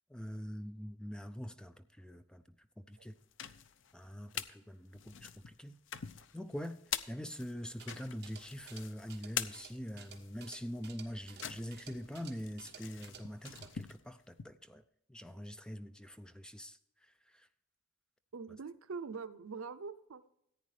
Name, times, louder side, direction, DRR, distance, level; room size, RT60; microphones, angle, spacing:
voice 1, 0.1-3.2 3.9-5.8 6.3-6.8 7.1-14.8 15.1-17.5, equal, 5° left, 0.4 m, -44 dB
sound 1, 3.1-4.6 4.9-14.5, left 9 dB, 65° left, 0.5 m, -45 dB
sound 2, 7.6-13.8, right 7 dB, 50° right, 1.3 m, -56 dB
voice 2, 18.3-20.3, right 5 dB, 90° right, 0.6 m, -44 dB
14.5 x 9.2 x 3.2 m
head